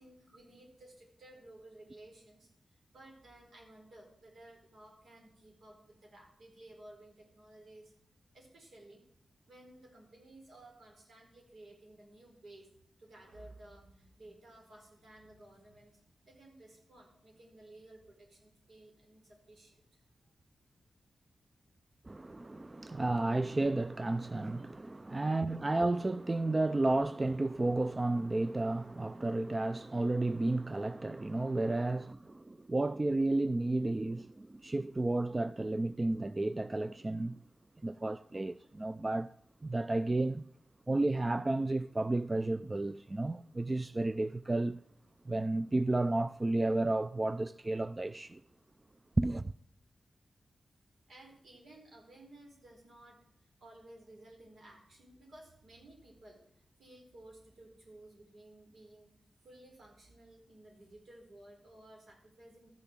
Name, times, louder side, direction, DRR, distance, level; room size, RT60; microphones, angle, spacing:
voice 1, 0.0-7.9 8.3-9.0 9.4-12.7 13.0-20.0 51.1-56.4 56.8-59.1 59.4-62.7, right 1 dB, 80° right, 4.4 m, -56 dB
voice 2, 22.0-37.4 37.8-39.3 39.6-40.5 40.9-44.8 45.3-48.4 49.2-49.5, right 2 dB, 30° right, 0.4 m, -32 dB
13.5 x 7.0 x 7.4 m
cardioid pair, 65°, 0 cm